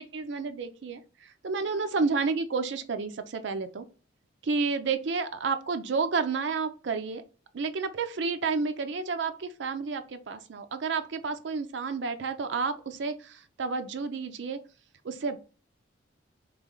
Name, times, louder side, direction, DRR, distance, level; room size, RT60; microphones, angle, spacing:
voice 1, 0.0-3.8 4.4-7.2 7.5-14.6 15.0-15.4, right 4 dB, 60° right, 8 dB, 0.5 m, -30 dB
3.2 x 3.1 x 3.7 m, 0.37 s
head